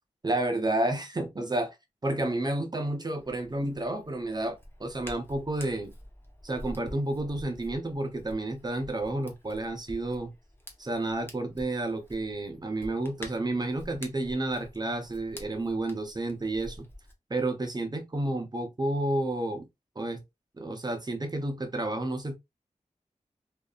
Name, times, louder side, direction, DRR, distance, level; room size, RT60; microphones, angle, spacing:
voice 1, 0.2-1.8 2.0-5.9 6.4-10.3 10.8-16.9 17.3-19.7 20.0-20.2 20.6-22.4, right 2 dB, 30° right, 0.7 m, -31 dB
Hands, 3.1-17.1, equal, 15° left, 0.8 m, -48 dB
2.6 x 2.4 x 2.3 m
wide cardioid pair, 65°, 13 cm